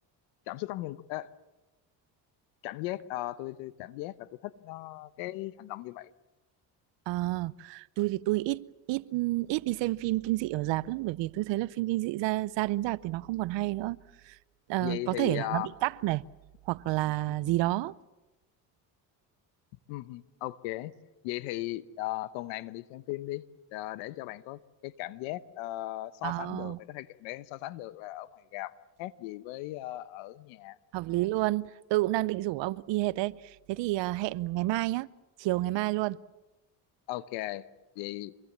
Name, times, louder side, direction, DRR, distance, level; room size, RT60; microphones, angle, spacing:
voice 1, 0.5-1.3 2.6-6.1 14.8-15.7 17.1-17.4 19.9-20.9 21.2-28.7 29.0-30.8 37.1-37.7 38.0-38.3, left 17 dB, 90° left, 1.1 m, -37 dB
voice 2, 7.1-14.0 14.3-14.4 14.7-16.2 16.7-17.9 26.2-26.8 30.9-35.1 35.4-36.2, right 18 dB, 75° right, 0.8 m, -30 dB
26.5 x 22.5 x 7.4 m
supercardioid pair, 80°, 44 cm